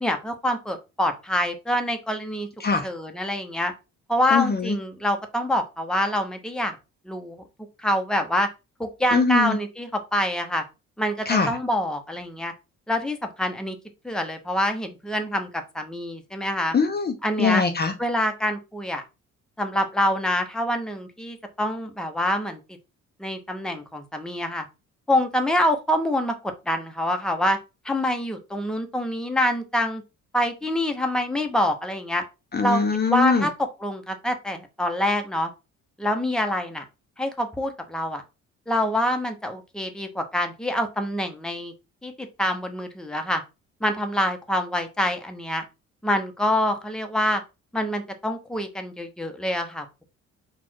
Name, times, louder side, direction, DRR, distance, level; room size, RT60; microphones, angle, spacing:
voice 1, 0.0-2.5 2.8-3.7 4.1-6.8 7.1-7.4 7.8-8.5 8.8-10.6 11.0-12.5 12.9-13.8 14.0-16.8 17.2-17.6 18.0-19.0 19.6-22.6 23.2-24.7 25.1-26.3 26.7-27.6 27.8-30.0 30.3-32.2 32.6-32.8 33.1-35.5 36.0-36.8 37.2-38.2 38.7-41.7 42.0-43.4 43.8-45.6 46.0-47.4 47.7-50.0, left 1 dB, ahead, 5 dB, 0.9 m, -26 dB
voice 2, 4.3-4.8 9.1-9.6 11.3-11.5 16.7-17.9 32.5-33.5, left 5 dB, 35° left, 6 dB, 0.7 m, -22 dB
4.3 x 2.5 x 4.6 m, 0.27 s
cardioid pair, 90°, 30 cm